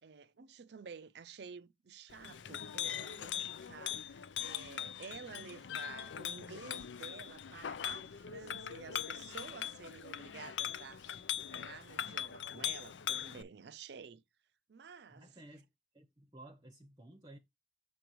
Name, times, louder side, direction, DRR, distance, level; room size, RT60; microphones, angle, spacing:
voice 1, 0.0-11.2 11.5-14.2 14.7-15.3, right 5 dB, 65° right, 0.5 m, -51 dB
Chink clink, 2.1-13.4, left 9 dB, 85° left, 0.5 m, -41 dB
voice 2, 15.1-15.7 15.9-17.4, right 1 dB, 20° right, 0.7 m, -55 dB
6.9 x 5.2 x 3.0 m
head